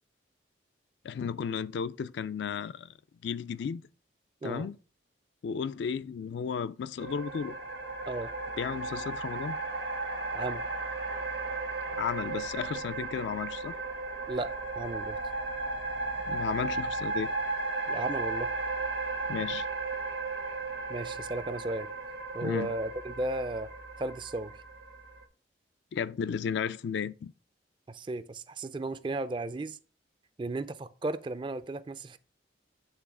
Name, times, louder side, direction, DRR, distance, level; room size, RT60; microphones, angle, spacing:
voice 1, 1.0-2.9 3.2-3.8 4.4-4.8 5.4-7.6 8.6-9.6 11.9-13.8 16.3-17.3 19.3-19.7 22.4-22.7 25.9-27.3, left 6 dB, 70° left, 0.3 m, -34 dB
sound 1, 7.0-25.2, right 3 dB, 60° right, 0.9 m, -35 dB
voice 2, 14.3-15.2 17.9-18.5 20.9-21.9 22.3-23.7 24.0-24.6 27.9-29.8 30.4-32.2, right 2 dB, 25° right, 0.3 m, -35 dB
8.2 x 3.2 x 4.8 m
head